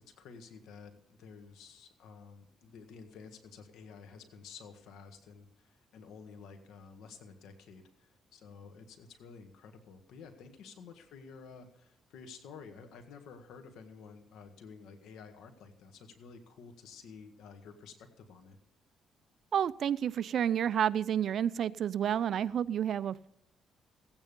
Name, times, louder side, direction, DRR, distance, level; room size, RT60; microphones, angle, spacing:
voice 1, 0.0-18.6, left 5 dB, 80° left, 7 dB, 1.7 m, -51 dB
voice 2, 19.5-23.3, right 9 dB, 65° right, 19 dB, 0.4 m, -30 dB
16.0 x 8.9 x 5.3 m, 0.79 s
cardioid pair, 90°, 0 cm